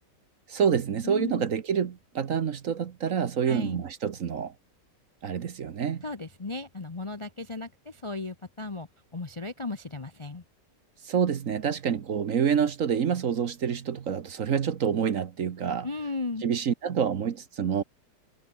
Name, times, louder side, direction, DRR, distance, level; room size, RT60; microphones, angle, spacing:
voice 1, 0.5-4.5 5.2-6.0 11.0-15.9 16.4-17.8, right 7 dB, 50° right, 1.3 m, -27 dB
voice 2, 1.0-1.5 3.5-3.8 6.0-8.9 9.1-10.4 15.8-16.4, left 3 dB, 25° left, 0.7 m, -35 dB
omnidirectional pair, 1.9 m